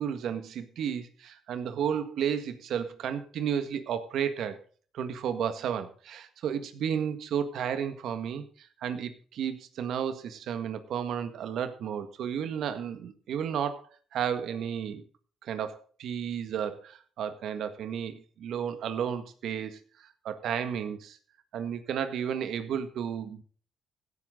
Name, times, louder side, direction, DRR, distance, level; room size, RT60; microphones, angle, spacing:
voice 1, 0.0-4.6 4.9-13.9 14.1-15.0 15.4-21.2 21.5-23.4, right 8 dB, 75° right, 10 dB, 1.8 m, -33 dB
16.5 x 9.5 x 3.9 m, 0.42 s
cardioid pair, 90°, 0 cm